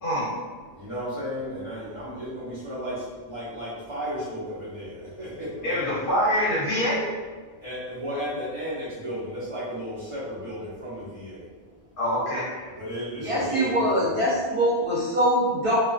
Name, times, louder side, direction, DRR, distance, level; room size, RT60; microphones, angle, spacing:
voice 1, 0.8-2.9 3.3-5.8 7.6-11.4 12.8-14.1, equal, 30° right, -10 dB, 0.9 m, -34 dB
voice 2, 5.6-7.0 12.0-12.5, equal, 55° left, -7 dB, 0.8 m, -24 dB
voice 3, 13.2-15.8, equal, 50° right, -9 dB, 0.3 m, -23 dB
2.3 x 2.3 x 2.3 m, 1.4 s
omnidirectional pair, 1.2 m